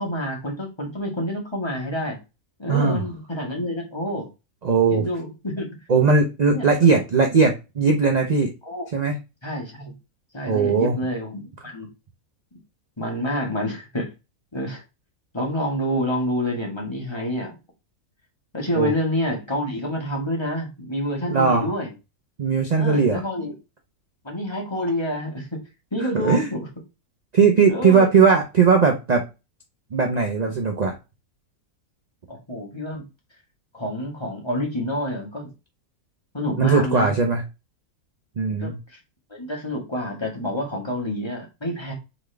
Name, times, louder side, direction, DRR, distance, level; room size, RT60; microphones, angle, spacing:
voice 1, 0.0-2.2 2.6-4.3 4.9-5.7 6.5-6.9 8.6-9.0 9.4-9.9 10.3-11.9 13.0-14.1 14.5-14.8 15.3-17.5 18.5-21.9 22.7-23.5 24.2-25.6 25.9-26.6 27.6-28.1 32.3-33.0 33.7-35.5 36.3-37.1 38.6-39.0 39.3-41.9, left 1 dB, 20° left, -1 dB, 1.4 m, -28 dB
voice 2, 2.7-3.0 4.6-5.0 5.9-8.5 8.9-9.1 10.5-11.0 18.7-18.9 21.3-21.7 22.4-23.2 26.0-26.5 27.3-29.2 29.9-30.9 36.6-37.4 38.4-38.8, right 5 dB, 55° right, 3 dB, 0.4 m, -19 dB
4.0 x 3.7 x 3.3 m, 0.26 s
omnidirectional pair, 1.6 m